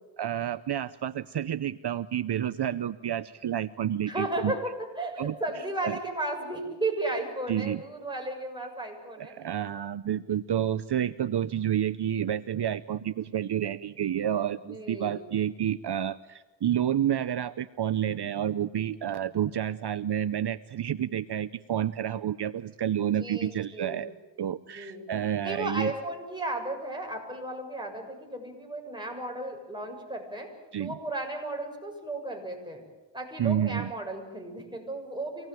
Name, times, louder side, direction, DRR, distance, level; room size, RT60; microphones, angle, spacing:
voice 1, 0.2-4.5 5.2-5.3 5.8-6.0 7.5-7.8 9.2-24.1 24.4-25.9 30.7-31.0 33.4-33.9, right 10 dB, 65° right, 13 dB, 0.7 m, -29 dB
voice 2, 4.1-9.3 14.6-15.3 23.0-24.0 24.5-25.1 25.4-30.5 30.8-32.8 33.1-35.5, right 2 dB, 10° right, 1 dB, 7.0 m, -34 dB
25.5 x 18.5 x 9.1 m, 1.2 s
cardioid pair, 65°, 44 cm